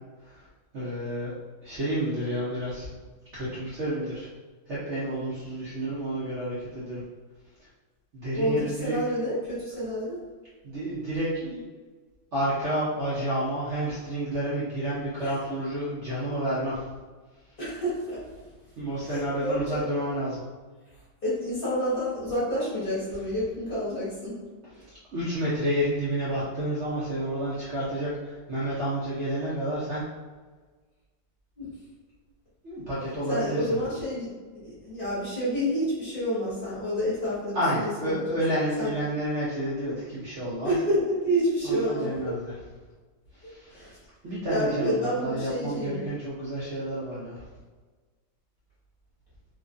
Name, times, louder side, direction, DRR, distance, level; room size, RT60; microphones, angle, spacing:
voice 1, 0.7-1.3 1.6-2.9 3.3-4.3 4.7-7.0 7.6-7.7 8.1-9.0 10.6-11.6 12.3-16.9 18.8-20.4 25.1-30.0 32.6-33.7 37.5-40.7 41.6-42.5 43.3-43.8 44.2-47.4, right 1 dB, 65° right, -9 dB, 0.7 m, -30 dB
voice 2, 8.3-10.2 15.2-15.3 17.6-18.2 19.0-19.8 21.2-24.4 31.6-31.7 33.3-34.3 34.5-38.3 38.8-38.9 40.6-42.3 43.7-44.0 44.5-45.9, equal, 35° left, -10 dB, 1.0 m, -29 dB
3.0 x 2.4 x 2.5 m, 1.3 s
omnidirectional pair, 2.0 m